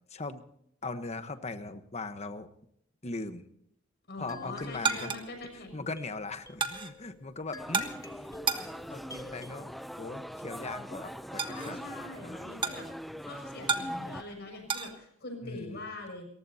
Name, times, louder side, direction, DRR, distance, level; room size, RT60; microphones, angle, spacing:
voice 1, 0.1-0.4 0.8-2.5 3.0-3.5 4.2-5.1 5.5-8.3 8.6-11.8 12.2-12.7 15.4-15.8, left 3 dB, 35° left, 10 dB, 1.2 m, -40 dB
voice 2, 4.1-5.9 11.4-12.9 13.2-16.3, left 2 dB, 55° left, 3 dB, 6.6 m, -43 dB
sound 1, 4.3-9.5, left 2 dB, 15° left, 1.2 m, -49 dB
sound 2, 4.3-14.9, right 5 dB, 25° right, 1.3 m, -37 dB
sound 3, 7.6-14.2, equal, ahead, 0.5 m, -42 dB
30.0 x 15.0 x 2.8 m, 0.70 s
head